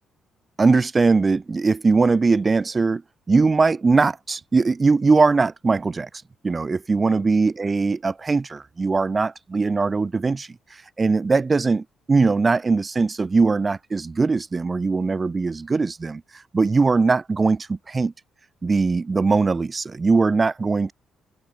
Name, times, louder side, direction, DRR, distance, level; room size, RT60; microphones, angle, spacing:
voice 1, 0.6-3.0 3.3-6.1 6.4-10.5 11.0-16.2 16.5-18.1 18.6-20.9, right 4 dB, 30° right, 0.9 m, -20 dB
open air
cardioid pair, 90°, 0 cm